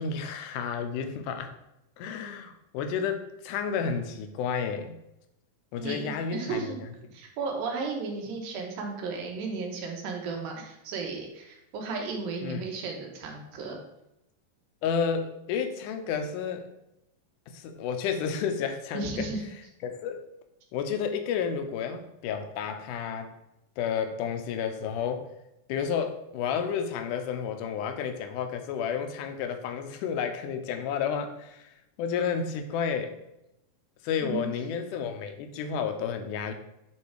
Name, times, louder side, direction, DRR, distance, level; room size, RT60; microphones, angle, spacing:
voice 1, 0.0-1.5 2.0-5.0 5.7-6.8 12.4-12.6 14.8-16.7 17.5-19.3 19.8-20.2 20.7-23.3 23.8-25.3 25.7-31.7 32.0-33.2 34.0-36.5, left 7 dB, 75° left, 6 dB, 2.1 m, -31 dB
voice 2, 5.8-6.8 7.1-13.8 18.9-19.4 34.2-34.5, right 4 dB, 85° right, 1 dB, 2.9 m, -34 dB
8.7 x 3.2 x 4.6 m, 0.86 s
omnidirectional pair, 4.0 m